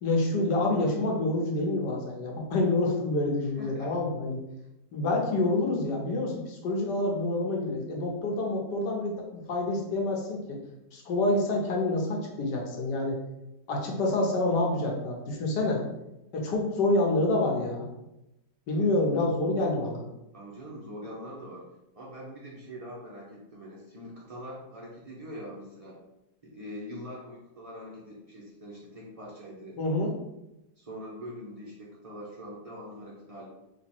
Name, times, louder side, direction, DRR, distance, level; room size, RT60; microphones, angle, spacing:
voice 1, 0.0-4.4 4.9-10.6 10.9-13.2 13.7-15.8 16.3-17.9 18.7-20.0 29.8-30.1, left 2 dB, 70° left, -1 dB, 1.5 m, -27 dB
voice 2, 3.6-3.9 18.7-18.9 20.3-21.7 21.9-26.0 26.4-29.8 30.8-33.5, equal, 55° right, -6 dB, 0.4 m, -43 dB
3.5 x 3.0 x 4.3 m, 0.91 s
omnidirectional pair, 1.9 m